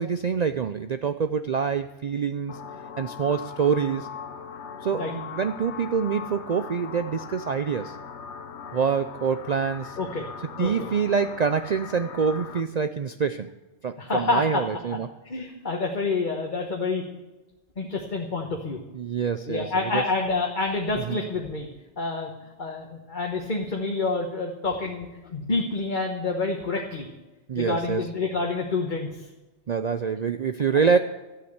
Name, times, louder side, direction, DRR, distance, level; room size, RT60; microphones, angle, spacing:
voice 1, 0.0-2.6 3.0-4.1 4.8-8.0 8.7-10.0 10.6-13.5 13.8-15.1 18.9-20.0 21.0-21.2 27.5-28.1 29.7-31.0, right 6 dB, 50° right, 9 dB, 0.5 m, -26 dB
sound 1, 2.5-12.6, left 6 dB, 75° left, 1.2 m, -40 dB
voice 2, 10.6-10.9 14.0-14.6 15.3-17.0 17.8-18.8 19.5-21.7 22.0-22.3 22.6-27.1 27.5-29.3, left 3 dB, 45° left, 1 dB, 1.5 m, -28 dB
13.0 x 8.8 x 8.0 m, 1.1 s
omnidirectional pair, 1.2 m